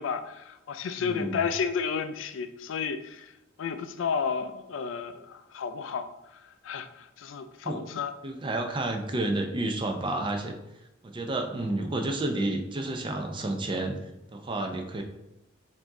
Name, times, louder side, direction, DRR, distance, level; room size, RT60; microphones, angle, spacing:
voice 1, 0.0-3.3 3.6-8.1, left 6 dB, 75° left, 9 dB, 0.3 m, -32 dB
voice 2, 1.0-1.5 7.6-7.8 8.2-10.5 11.0-14.0 14.3-15.0, right 2 dB, 25° right, 4 dB, 0.5 m, -30 dB
4.9 x 2.7 x 3.6 m, 0.90 s
head